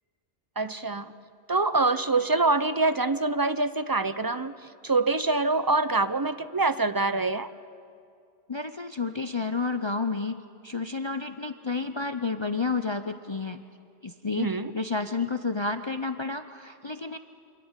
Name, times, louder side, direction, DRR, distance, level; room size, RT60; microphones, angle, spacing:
voice 1, 0.6-1.1 1.5-4.5 4.8-7.5 14.3-14.7, right 3 dB, 25° right, 12 dB, 0.6 m, -25 dB
voice 2, 8.5-13.6 14.0-17.2, left 4 dB, 30° left, 9 dB, 0.7 m, -30 dB
27.5 x 25.0 x 8.2 m, 2.4 s
omnidirectional pair, 1.1 m